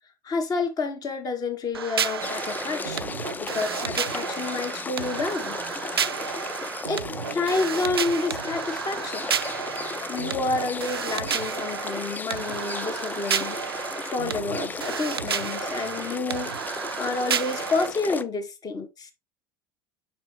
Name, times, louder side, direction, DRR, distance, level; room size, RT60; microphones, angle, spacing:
voice 1, 0.2-5.6 6.9-7.0 7.3-9.3 10.1-16.6 17.0-19.1, left 3 dB, 30° left, 1.5 m, -29 dB
sound 1, 1.7-17.9, right 8 dB, 85° right, 0.4 m, -31 dB
sound 2, 2.2-18.2, left 3 dB, 15° left, 0.5 m, -35 dB
5.7 x 5.0 x 3.3 m
figure-of-eight pair, 75°, 12 cm